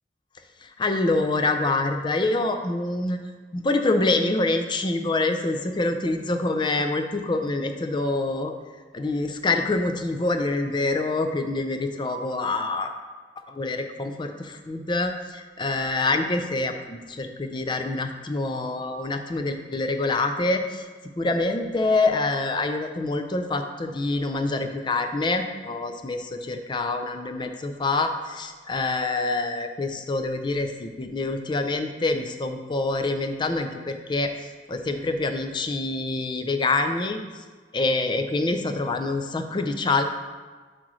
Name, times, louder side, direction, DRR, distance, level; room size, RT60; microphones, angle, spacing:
voice 1, 0.6-3.2 3.5-8.5 8.9-12.9 13.5-20.9 21.2-34.3 34.7-37.2 37.7-40.0, left 2 dB, 25° left, 6 dB, 0.4 m, -26 dB
7.7 x 4.8 x 3.1 m, 1.4 s
head